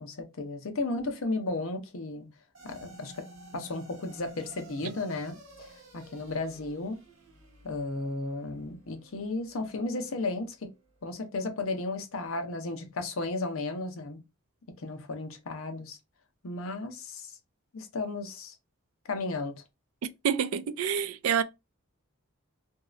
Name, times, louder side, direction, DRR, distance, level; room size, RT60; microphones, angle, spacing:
voice 1, 0.0-2.3 2.6-3.3 3.5-7.0 7.6-10.7 11.0-14.2 14.8-16.0 16.4-17.3 17.7-18.5 19.0-19.5, left 2 dB, 70° left, 0.7 m, -34 dB
sound 1, 2.5-11.1, right 2 dB, 60° right, 1.7 m, -53 dB
voice 2, 20.2-21.4, right 8 dB, 80° right, 0.4 m, -27 dB
3.0 x 2.7 x 2.4 m
head